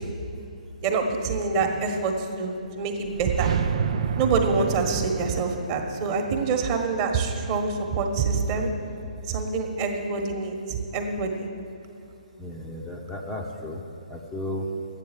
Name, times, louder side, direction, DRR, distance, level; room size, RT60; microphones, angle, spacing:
voice 1, 0.8-3.5 4.2-8.7 9.3-11.5, right 4 dB, 30° right, 3 dB, 1.4 m, -26 dB
sound 1, 2.7-7.8, right 7 dB, 50° right, 0.5 m, -31 dB
voice 2, 12.4-13.8 14.1-14.7, left 1 dB, 10° left, -2 dB, 0.9 m, -34 dB
11.5 x 9.2 x 7.4 m, 2.8 s
hypercardioid pair, 145°, 4 cm